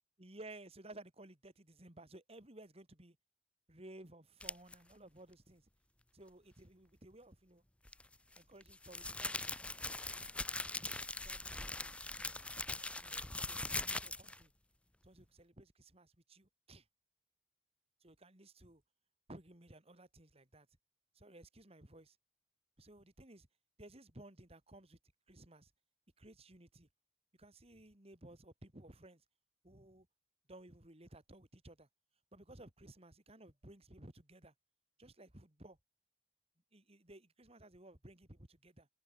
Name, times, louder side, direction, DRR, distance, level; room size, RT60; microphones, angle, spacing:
voice 1, 0.2-3.2 3.7-5.7 6.1-7.6 8.4-10.1 10.7-11.9 12.2-14.5 15.0-16.8 18.0-18.8 19.3-20.7 21.1-22.2 22.8-23.5 23.8-25.0 25.3-25.7 26.2-26.9 27.4-29.2 29.6-30.1 30.5-31.9 32.3-34.5 35.0-35.8 36.7-38.9, right 1 dB, 35° right, 3.1 m, -57 dB
sound 1, 4.4-4.7 7.8-14.4, left 2 dB, 5° left, 0.6 m, -41 dB
head